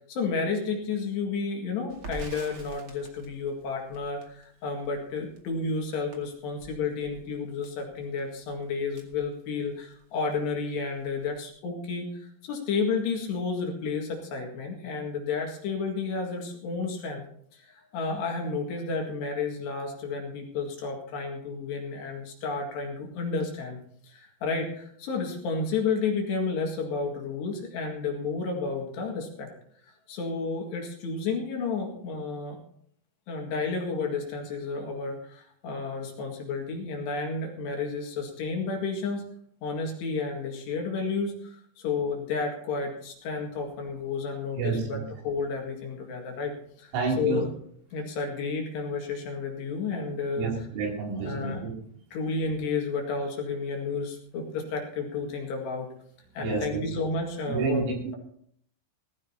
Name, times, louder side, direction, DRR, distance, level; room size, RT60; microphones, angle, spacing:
voice 1, 0.1-17.2 17.5-23.8 24.0-29.5 30.1-32.6 33.3-39.3 39.6-45.0 45.2-46.5 46.8-47.5 47.9-50.5 51.2-51.6 52.1-55.9 56.3-57.8, left 4 dB, 65° left, 1 dB, 3.7 m, -31 dB
Crackle, 1.9-10.0 10.3-10.4 10.7-11.5, right 3 dB, 45° right, 1.7 m, -47 dB
voice 2, 44.6-45.0 46.9-47.5 50.4-51.7 56.4-56.8 57.5-58.2, right 4 dB, 80° right, 0 dB, 5.6 m, -29 dB
20.0 x 15.0 x 2.8 m, 0.63 s
omnidirectional pair, 5.8 m